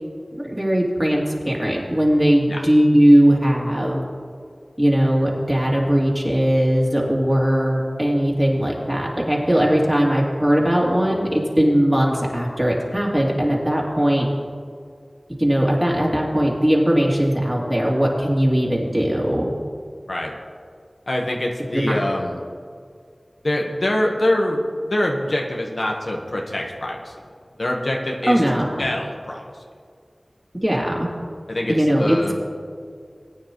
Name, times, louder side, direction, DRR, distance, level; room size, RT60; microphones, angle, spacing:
voice 1, 0.4-4.0 4.8-14.3 15.4-19.5 21.7-22.0 28.3-28.9 30.6-31.1 31.7-32.2, equal, 15° right, -3 dB, 2.7 m, -19 dB
voice 2, 21.1-22.4 23.4-27.1 27.6-28.4 28.8-29.4 31.5-32.4, left 1 dB, 70° left, 0 dB, 1.3 m, -24 dB
20.0 x 9.5 x 3.1 m, 2.1 s
wide cardioid pair, 45°, 0 cm